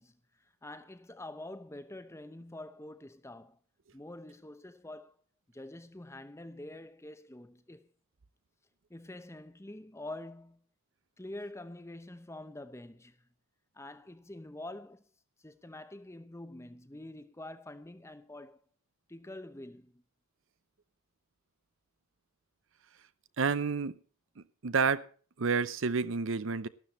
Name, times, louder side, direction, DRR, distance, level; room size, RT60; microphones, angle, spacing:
voice 1, 0.0-3.6 3.9-5.1 5.5-7.9 8.9-10.6 11.2-13.2 13.7-15.0 15.4-18.6 19.1-20.0, left 1 dB, 15° left, 0.8 m, -46 dB
voice 2, 23.4-24.0 24.4-25.1 25.4-26.7, right 5 dB, 60° right, 0.6 m, -30 dB
12.5 x 12.5 x 4.2 m
head